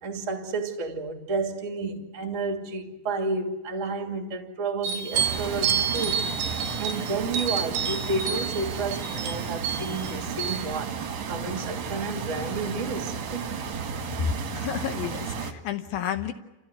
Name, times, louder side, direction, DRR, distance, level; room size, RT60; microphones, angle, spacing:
voice 1, 0.0-13.6, right 3 dB, 25° right, 1.8 m, -31 dB
sound 1, 4.8-10.6, right 7 dB, 70° right, 2.1 m, -30 dB
sound 2, 5.1-15.5, right 6 dB, 50° right, 2.3 m, -33 dB
voice 2, 14.5-16.3, left 10 dB, 75° left, 2.2 m, -31 dB
29.5 x 15.0 x 9.8 m
omnidirectional pair, 5.3 m